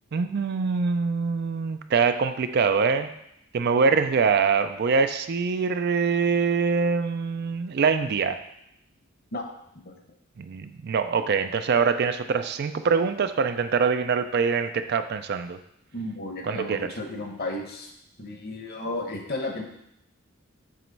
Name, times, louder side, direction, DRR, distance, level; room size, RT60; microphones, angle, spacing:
voice 1, 0.1-3.1 3.5-8.4 10.4-15.6 16.4-16.9, right 5 dB, 55° right, 9 dB, 0.4 m, -24 dB
voice 2, 15.9-17.9 18.2-19.6, left 2 dB, 50° left, 3 dB, 1.0 m, -33 dB
7.5 x 3.1 x 5.3 m, 0.77 s
head